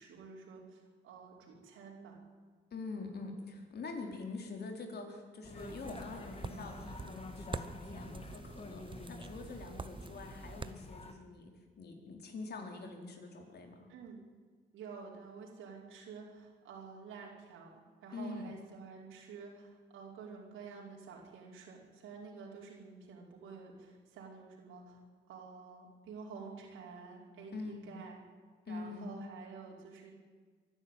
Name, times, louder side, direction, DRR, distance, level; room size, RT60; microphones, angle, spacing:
voice 1, 0.0-2.2 13.9-14.2 14.7-25.0 25.3-28.2 28.7-30.1, right 5 dB, 85° right, -1 dB, 4.9 m, -50 dB
voice 2, 2.7-8.8 9.1-11.5 11.8-13.9 18.1-18.5 27.5-28.0 28.7-29.1, left 3 dB, 55° left, 2 dB, 4.4 m, -45 dB
sound 1, 5.4-11.1, left 3 dB, 30° left, 2.2 m, -49 dB
sound 2, 5.6-10.7, right 4 dB, 25° right, 1.0 m, -46 dB
24.0 x 12.0 x 9.2 m, 1.6 s
cardioid pair, 90°, 20 cm